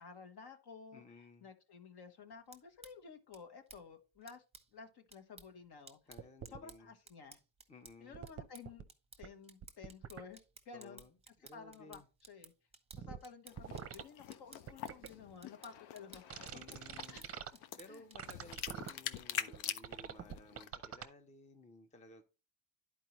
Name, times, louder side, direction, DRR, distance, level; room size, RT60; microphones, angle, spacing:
voice 1, 0.0-4.4 4.7-6.0 6.5-7.4 8.0-8.9 9.2-10.4 10.6-11.0 11.5-12.5 13.0-16.3 17.1-17.2 17.9-18.0, left 5 dB, 55° left, 1.3 m, -53 dB
voice 2, 0.9-1.5 6.1-6.9 7.7-8.3 10.7-11.1 11.4-12.1 16.5-17.2 17.8-22.2, left 2 dB, 15° left, 0.7 m, -57 dB
sound 1, 2.3-19.7, right 4 dB, 15° right, 0.9 m, -60 dB
sound 2, 6.2-6.6 8.1-8.8 9.2-9.3 9.6-10.2 12.9-13.2 13.6-14.0 14.7-15.1 16.3-17.5 18.2-18.9 19.5-19.6 19.8-21.1, right 8 dB, 30° right, 0.7 m, -45 dB
sound 3, 13.5-20.7, left 10 dB, 90° left, 0.7 m, -45 dB
11.0 x 4.7 x 3.0 m
cardioid pair, 100°, 47 cm